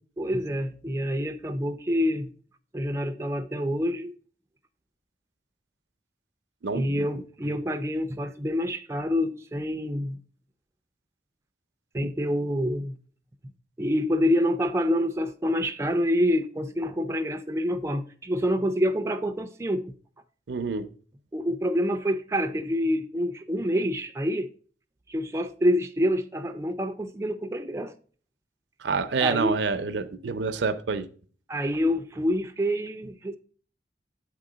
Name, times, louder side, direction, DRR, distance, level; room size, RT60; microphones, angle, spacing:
voice 1, 0.2-2.3 2.7-4.1 6.7-10.2 11.9-13.0 13.8-20.0 21.3-24.5 25.1-27.9 29.2-29.6 31.5-33.3, equal, 15° right, 0.4 m, -27 dB
voice 2, 6.6-7.5 20.5-20.9 28.8-31.1, right 4 dB, 75° right, 0.6 m, -28 dB
7.9 x 3.8 x 4.9 m
head